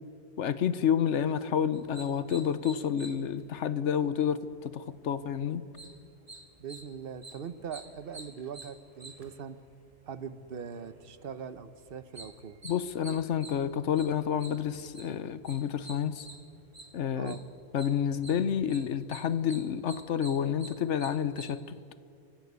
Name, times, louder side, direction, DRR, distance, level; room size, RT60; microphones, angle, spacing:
voice 1, 0.4-5.6 12.6-16.3 16.9-17.3 17.7-21.8, left 8 dB, 75° left, 14 dB, 1.1 m, -29 dB
sound 1, 1.7-21.5, right 2 dB, 30° right, 1.7 m, -51 dB
voice 2, 6.6-9.6 10.1-12.6 17.2-17.4, right 7 dB, 55° right, 12 dB, 1.1 m, -41 dB
25.0 x 14.5 x 8.2 m, 2.4 s
omnidirectional pair, 1.2 m